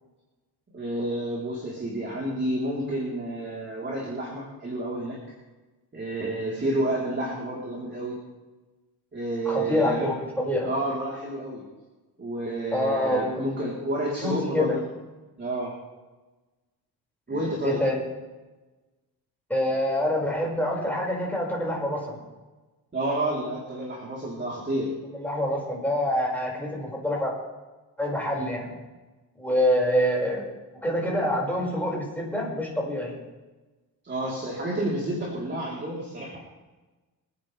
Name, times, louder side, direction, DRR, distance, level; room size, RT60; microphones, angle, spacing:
voice 1, 0.7-5.2 5.9-8.2 9.1-10.1 10.6-11.6 12.2-14.8 15.4-15.7 17.3-17.8 22.9-24.9 34.0-36.4, right 1 dB, 30° right, -5 dB, 4.0 m, -30 dB
voice 2, 9.5-10.7 12.7-13.4 14.2-14.7 17.3-18.0 19.5-22.2 25.1-27.3 28.0-28.7 29.4-30.4 30.8-33.1, left 1 dB, 5° left, -3 dB, 5.8 m, -26 dB
27.0 x 9.9 x 3.5 m, 1.2 s
cardioid pair, 110°, 37 cm